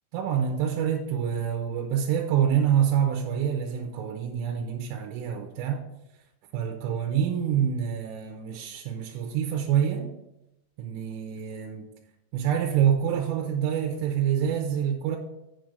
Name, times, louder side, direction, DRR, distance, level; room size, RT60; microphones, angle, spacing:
voice 1, 0.1-5.8 6.5-10.1 10.8-11.9 12.3-15.2, right 9 dB, 90° right, 2 dB, 3.4 m, -26 dB
8.0 x 6.8 x 5.0 m, 0.90 s
omnidirectional pair, 5.8 m